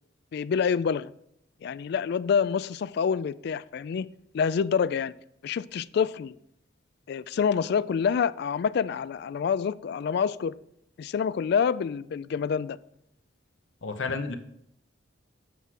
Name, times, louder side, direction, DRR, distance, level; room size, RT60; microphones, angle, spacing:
voice 1, 0.3-1.1 1.6-4.1 4.3-5.1 5.4-6.3 7.1-10.5 11.0-12.8, left 6 dB, 60° left, 0.3 m, -27 dB
voice 2, 13.8-14.3, left 4 dB, 80° left, 0.9 m, -31 dB
8.1 x 4.7 x 5.9 m
head